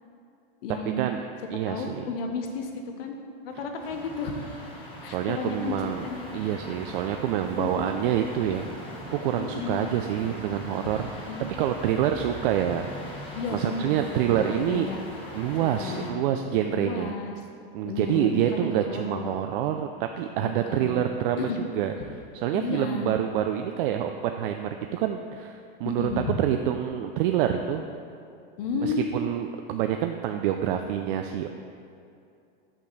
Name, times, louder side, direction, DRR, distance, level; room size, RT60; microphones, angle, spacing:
voice 1, 0.6-1.0 1.7-3.1 3.4-4.6 5.0-6.5 7.6-7.9 9.3-9.8 11.3-11.4 13.3-15.0 15.6-16.2 16.7-17.3 17.8-19.4 20.4-21.1 21.4-21.6 22.5-23.1 25.8-26.3 28.6-29.0, left 4 dB, 70° left, 3 dB, 1.0 m, -33 dB
voice 2, 1.5-2.0 5.1-6.0 6.3-12.9 13.5-14.9 15.3-17.1 17.7-21.5 21.7-21.9 22.4-26.1 26.4-27.8 28.8-31.5, right 10 dB, 60° right, 5 dB, 0.4 m, -27 dB
sound 1, 3.8-16.1, left 1 dB, 15° left, 1.3 m, -41 dB
6.5 x 6.0 x 4.0 m, 2.6 s
supercardioid pair, 140°, 30 cm